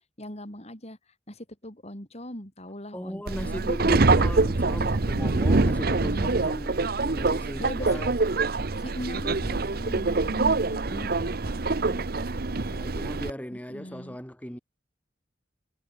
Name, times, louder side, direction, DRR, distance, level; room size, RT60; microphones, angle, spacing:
voice 1, 0.2-3.7 5.8-6.5 7.6-8.0 8.8-12.8 13.5-14.2, left 1 dB, 35° left, 7.8 m, -41 dB
voice 2, 2.9-8.1 12.7-14.6, equal, 10° left, 3.3 m, -37 dB
Subway metro underground, 3.3-13.3, right 3 dB, 55° right, 0.9 m, -25 dB
head